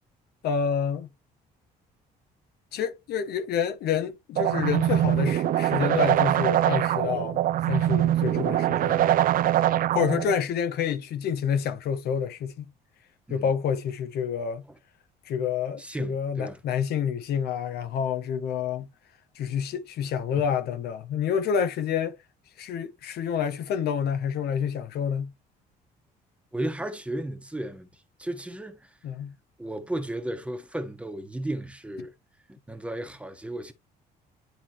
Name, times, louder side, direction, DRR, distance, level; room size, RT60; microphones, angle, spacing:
voice 1, 0.4-1.1 2.7-9.1 9.9-12.6 13.3-14.7 15.2-18.9 19.3-22.2 22.6-25.3 29.0-29.3, left 7 dB, 70° left, 1.2 m, -28 dB
sound 1, 4.3-10.3, right 12 dB, 55° right, 0.6 m, -23 dB
voice 2, 15.8-16.6 26.5-27.9 28.2-28.9 29.6-32.1 32.7-33.7, right 1 dB, 5° right, 1.3 m, -34 dB
11.0 x 3.7 x 3.0 m
cardioid pair, 110°, 17 cm